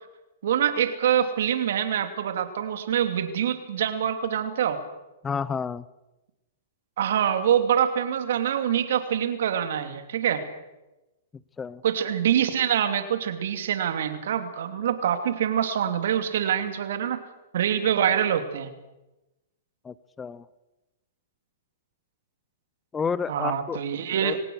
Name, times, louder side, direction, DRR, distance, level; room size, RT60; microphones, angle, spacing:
voice 1, 0.4-4.8 7.0-10.4 11.8-17.2 17.5-18.7 23.3-24.4, right 9 dB, 65° right, 8 dB, 2.9 m, -25 dB
voice 2, 5.2-5.8 11.6-11.8 19.8-20.4 22.9-23.8 24.2-24.4, left 6 dB, 15° left, 19 dB, 0.8 m, -30 dB
25.5 x 18.0 x 6.5 m, 1.0 s
hypercardioid pair, 120°, 0 cm